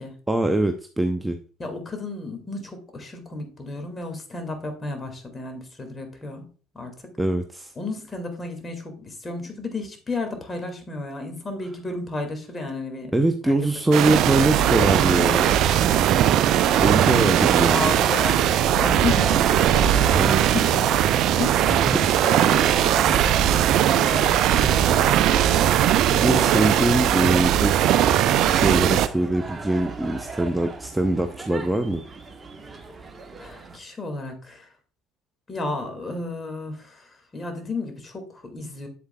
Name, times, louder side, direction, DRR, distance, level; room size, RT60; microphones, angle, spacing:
voice 1, 0.3-1.4 7.2-7.7 13.1-15.6 16.8-17.9 20.1-20.4 21.7-22.1 26.2-27.8 28.4-32.0, right 1 dB, 10° right, 6 dB, 0.7 m, -23 dB
voice 2, 1.6-6.5 6.7-6.9 7.8-13.1 13.4-13.6 15.2-16.3 16.6-17.1 17.7-20.3 20.5-21.9 22.2-25.2 25.9-26.5 33.4-34.7 35.5-38.9, left 2 dB, 25° left, 5 dB, 2.2 m, -33 dB
sound 1, 13.9-29.1, right 11 dB, 55° right, 0.4 m, -19 dB
sound 2, 16.1-33.8, right 4 dB, 25° right, 1.2 m, -36 dB
8.0 x 8.0 x 2.3 m, 0.39 s
figure-of-eight pair, 65°, 0 cm